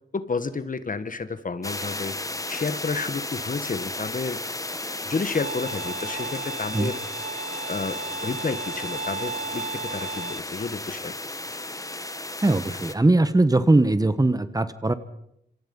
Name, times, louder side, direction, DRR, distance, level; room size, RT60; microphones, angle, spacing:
voice 1, 0.1-2.2 2.5-4.4 5.0-7.0 7.7-11.1, left 4 dB, 45° left, 12 dB, 1.6 m, -30 dB
sound 1, 1.6-12.9, left 2 dB, 15° left, 1.6 m, -34 dB
Bowed string instrument, 5.3-10.4, right 3 dB, 40° right, 1.0 m, -35 dB
voice 2, 12.4-14.9, right 2 dB, 20° right, 13 dB, 1.4 m, -20 dB
27.0 x 26.5 x 5.6 m, 0.76 s
wide cardioid pair, 100°, 19 cm